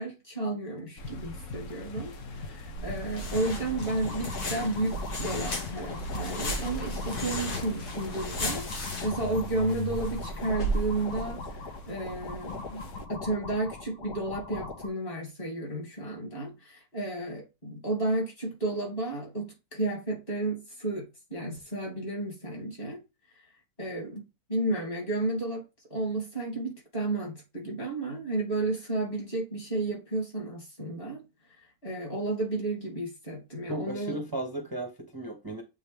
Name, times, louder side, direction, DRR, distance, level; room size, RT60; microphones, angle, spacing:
voice 1, 0.0-12.8 13.1-23.0 23.8-25.6 25.9-31.2 31.6-34.2, right 2 dB, 35° left, 2.8 m, -32 dB
sound 1, 1.0-13.1, left 2 dB, 55° left, 1.1 m, -42 dB
sound 2, 2.8-11.3, equal, 75° left, 2.0 m, -35 dB
sound 3, 3.3-14.9, left 3 dB, 90° left, 2.2 m, -41 dB
voice 2, 33.7-35.6, right 1 dB, 20° right, 0.6 m, -35 dB
7.9 x 3.7 x 3.4 m
omnidirectional pair, 1.7 m